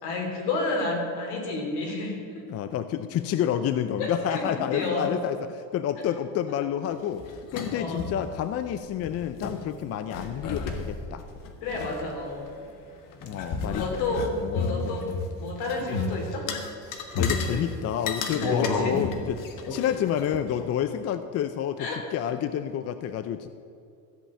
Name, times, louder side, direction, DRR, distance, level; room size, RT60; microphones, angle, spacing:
voice 1, 0.0-2.4 4.0-5.1 7.7-8.0 11.6-12.5 13.6-15.1 15.4-16.5 17.1-17.6 18.4-19.0 21.8-22.0, left 3 dB, 80° left, 0 dB, 3.5 m, -31 dB
voice 2, 2.5-7.2 7.5-11.2 13.2-15.0 17.1-19.4 19.7-23.5, left 10 dB, 40° left, 11 dB, 0.5 m, -29 dB
sound 1, 7.1-8.2 8.6-8.7 8.9-9.6 10.1-12.7 13.1-15.3 15.6-16.1 16.5-17.6 18.0-20.6, left 4 dB, 55° left, 1.5 m, -32 dB
14.0 x 5.5 x 8.5 m, 2.5 s
cardioid pair, 140°, 39 cm